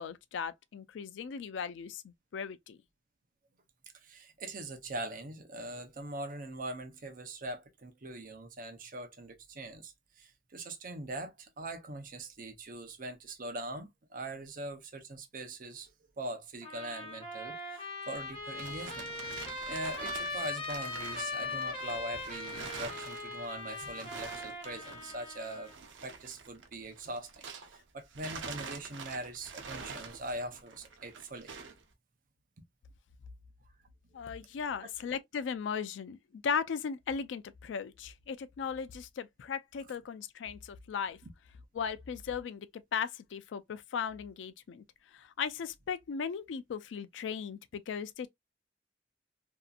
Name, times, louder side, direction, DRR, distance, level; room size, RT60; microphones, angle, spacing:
voice 1, 0.0-2.8 34.1-41.2 41.7-44.8 45.1-48.3, left 6 dB, 85° left, 0.3 m, -37 dB
voice 2, 4.0-15.9 16.2-19.1 19.7-25.7 26.0-31.5 34.8-34.9, right 1 dB, 45° right, 0.6 m, -42 dB
Trumpet, 16.6-25.8, left 2 dB, 30° left, 1.0 m, -40 dB
sound 1, 18.2-27.8 28.1-31.8, right 5 dB, 85° right, 0.6 m, -46 dB
2.7 x 2.4 x 2.2 m
head